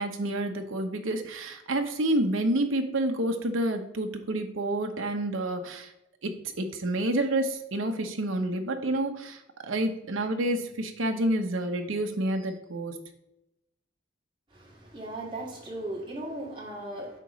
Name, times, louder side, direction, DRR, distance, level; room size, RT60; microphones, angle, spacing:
voice 1, 0.0-5.9 6.2-13.0, right 1 dB, 85° right, 5 dB, 1.0 m, -29 dB
voice 2, 14.5-17.2, right 1 dB, 25° right, -3 dB, 2.0 m, -37 dB
8.9 x 3.0 x 6.2 m, 0.86 s
head